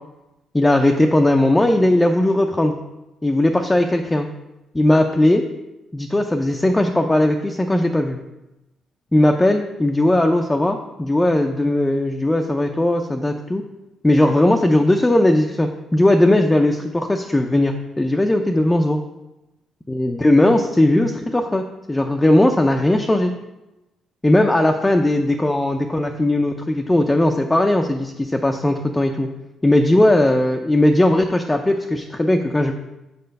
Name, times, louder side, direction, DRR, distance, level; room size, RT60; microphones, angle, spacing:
voice 1, 0.5-2.8 3.2-4.3 4.7-5.4 5.9-8.2 9.1-13.6 14.0-19.0 19.9-23.3 24.2-29.3 29.6-32.7, left 1 dB, 15° left, 3 dB, 0.5 m, -18 dB
6.7 x 4.2 x 5.3 m, 0.98 s
cardioid pair, 90°, 0 cm